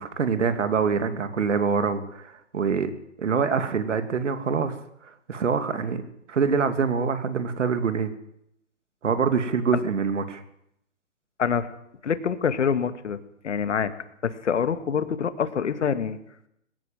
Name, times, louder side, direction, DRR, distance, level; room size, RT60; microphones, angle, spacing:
voice 1, 0.0-2.9 3.2-4.8 5.0-6.0 6.3-8.1 9.0-10.4, right 5 dB, 70° right, 10 dB, 3.0 m, -25 dB
voice 2, 12.0-13.2 13.4-13.9 14.2-16.2, left 7 dB, 65° left, 11 dB, 2.4 m, -25 dB
20.5 x 17.0 x 7.8 m, 0.75 s
hypercardioid pair, 145°, 38 cm